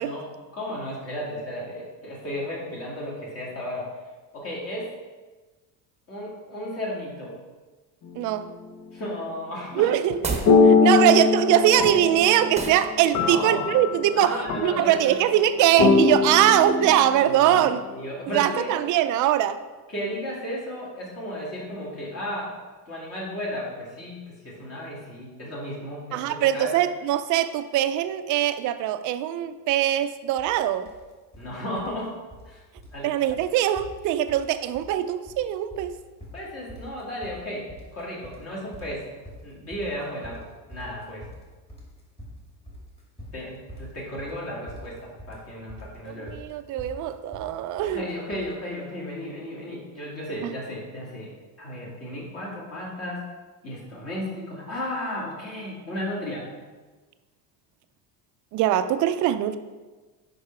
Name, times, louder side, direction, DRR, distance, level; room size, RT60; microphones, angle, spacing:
voice 1, 0.0-3.9 4.3-4.9 6.1-7.4 8.9-9.9 10.9-11.0 13.2-13.6 14.1-15.3 17.2-17.6 17.9-18.7 19.9-22.6 22.9-26.8 31.3-32.2 32.4-32.6 32.9-33.1 36.3-39.1 39.4-41.3 43.3-46.4 47.8-53.2 53.6-56.5, left 1 dB, 35° left, 2.4 m, -34 dB
sound 1, 8.1-8.5 10.5-15.3 15.8-18.1, left 4 dB, 55° left, 1.0 m, -22 dB
voice 2, 8.2-8.5 9.8-17.8 18.3-19.6 26.1-30.9 33.0-35.9 46.1-48.0 50.4-50.5 58.5-59.6, right 11 dB, 50° right, 0.5 m, -22 dB
sound 2, 10.2-10.6 12.5-12.9, right 4 dB, 15° right, 0.9 m, -29 dB
sound 3, 30.4-30.6 30.9-31.5 31.8-32.5 32.8-33.0 33.3-33.4 33.8-34.5 34.7-35.4 35.7-48.5, equal, 15° left, 2.1 m, -44 dB
6.6 x 5.6 x 4.6 m
cardioid pair, 140°, 41 cm